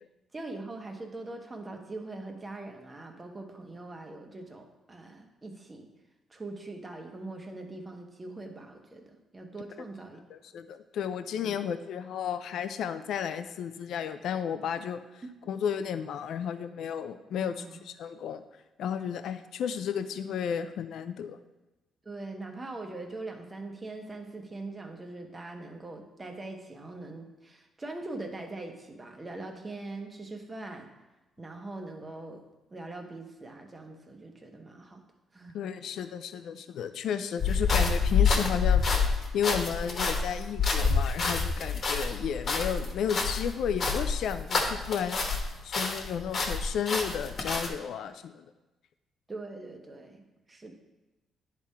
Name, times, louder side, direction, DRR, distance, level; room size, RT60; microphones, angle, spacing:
voice 1, 0.3-5.9 6.3-10.2 11.4-11.6 17.4-17.8 22.0-30.9 31.4-32.4 32.7-35.0 35.3-35.6 49.3-50.2 50.5-50.7, right 2 dB, 25° right, 3 dB, 1.1 m, -42 dB
voice 2, 10.3-18.4 18.8-21.4 35.5-45.2 45.6-48.5, left 8 dB, 75° left, 10 dB, 0.4 m, -33 dB
sound 1, 37.4-45.5 45.7-47.7, left 5 dB, 50° left, 1.2 m, -27 dB
10.5 x 3.6 x 4.2 m, 1.1 s
cardioid pair, 90°, 0 cm